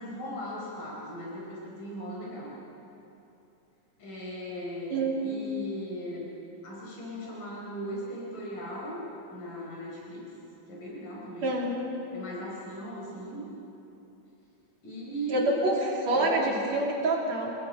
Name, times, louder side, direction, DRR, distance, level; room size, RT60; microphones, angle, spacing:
voice 1, 0.0-2.6 4.0-6.3 6.6-9.0 9.3-10.3 10.7-11.6 12.1-13.5 14.8-15.5 16.2-16.6, right 1 dB, 80° left, -4 dB, 6.0 m, -38 dB
voice 2, 11.4-11.7 15.3-17.5, right 2 dB, 60° right, -2 dB, 4.0 m, -27 dB
29.0 x 20.0 x 5.6 m, 2.9 s
omnidirectional pair, 3.7 m